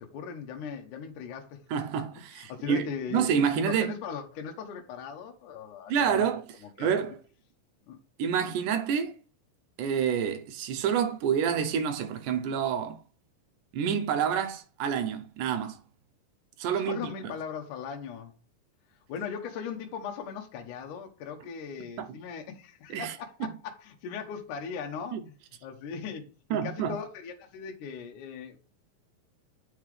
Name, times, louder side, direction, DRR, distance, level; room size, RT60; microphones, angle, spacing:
voice 1, 0.0-1.6 2.1-6.3 6.6-6.9 7.9-8.0 16.7-18.3 19.1-28.6, left 6 dB, 75° left, 2.5 m, -39 dB
voice 2, 1.7-3.9 5.9-6.4 6.8-7.2 8.2-9.1 9.8-13.0 13.7-15.8 16.6-17.1 22.0-22.1 22.9-23.1 25.1-25.2 26.5-27.0, right 7 dB, 75° right, 2.2 m, -28 dB
8.4 x 5.4 x 3.3 m
omnidirectional pair, 3.9 m